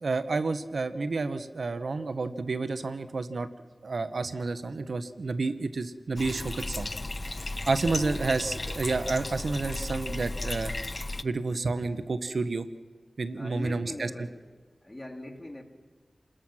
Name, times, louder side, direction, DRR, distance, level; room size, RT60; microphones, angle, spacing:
voice 1, 0.0-3.5 3.8-6.9 7.7-10.7 11.2-12.7 13.2-14.3, right 3 dB, 75° right, 1.0 m, -30 dB
Bathtub (filling or washing), 6.2-11.2, left 2 dB, 40° left, 0.7 m, -35 dB
voice 2, 7.9-8.3 13.3-14.4 14.8-15.6, left 1 dB, 20° left, 3.1 m, -41 dB
28.5 x 20.5 x 6.2 m
wide cardioid pair, 55°, 0 cm